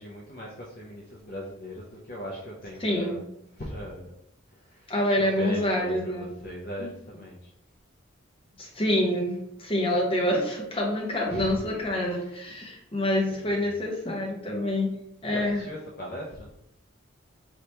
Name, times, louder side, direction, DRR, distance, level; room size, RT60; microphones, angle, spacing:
voice 1, 0.0-4.1 4.5-7.5 11.3-12.5 13.3-13.7 15.3-16.5, equal, 50° left, -3 dB, 0.7 m, -39 dB
voice 2, 2.8-3.2 4.9-6.3 8.6-15.0 15.2-15.6, left 1 dB, 25° left, -2 dB, 1.0 m, -27 dB
4.9 x 3.3 x 2.9 m, 0.74 s
head